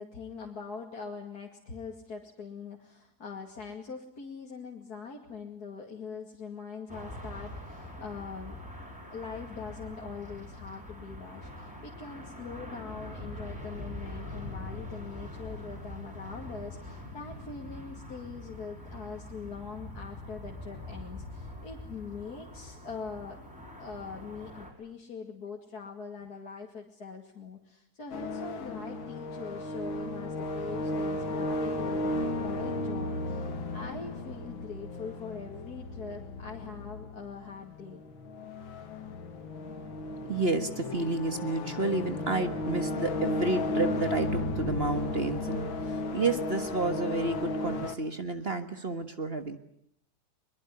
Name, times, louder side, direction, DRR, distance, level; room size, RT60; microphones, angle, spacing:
voice 1, 0.0-8.6 9.1-23.4 23.8-38.0, left 5 dB, 50° left, -1 dB, 2.9 m, -42 dB
sound 1, 6.9-24.7, left 1 dB, 5° right, 6.2 m, -43 dB
sound 2, 28.1-48.0, left 2 dB, 80° left, 2.5 m, -34 dB
voice 2, 40.3-49.6, right 2 dB, 35° right, 9 dB, 1.6 m, -30 dB
23.0 x 22.5 x 9.8 m, 0.70 s
omnidirectional pair, 2.1 m